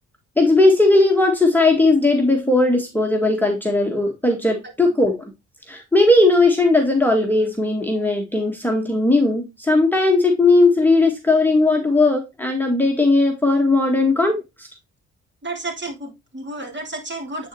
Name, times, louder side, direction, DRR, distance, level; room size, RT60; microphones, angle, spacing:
voice 1, 0.4-5.2 5.7-14.7, left 2 dB, 5° left, 2 dB, 1.8 m, -17 dB
voice 2, 15.4-17.5, right 2 dB, 30° right, 2 dB, 3.0 m, -31 dB
8.9 x 4.3 x 3.1 m, 0.23 s
supercardioid pair, 55°, 36 cm